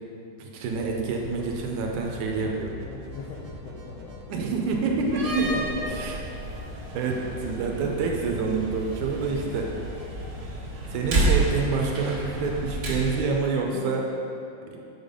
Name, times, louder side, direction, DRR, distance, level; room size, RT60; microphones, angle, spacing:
voice 1, 0.4-2.7 4.3-5.4 5.9-6.2 6.9-9.7 10.9-14.0, right 4 dB, 90° right, 0 dB, 2.2 m, -27 dB
sound 1, 0.7-13.3, left 2 dB, 65° left, 0.9 m, -42 dB
sound 2, 1.2-13.2, left 1 dB, 70° right, 1.5 m, -47 dB
voice 2, 2.8-4.4 5.2-6.0 13.7-13.9, left 3 dB, 80° left, -3 dB, 1.5 m, -37 dB
Slam, 5.0-13.4, right 2 dB, 50° right, 1.3 m, -30 dB
7.2 x 4.0 x 5.1 m, 2.6 s
omnidirectional pair, 3.5 m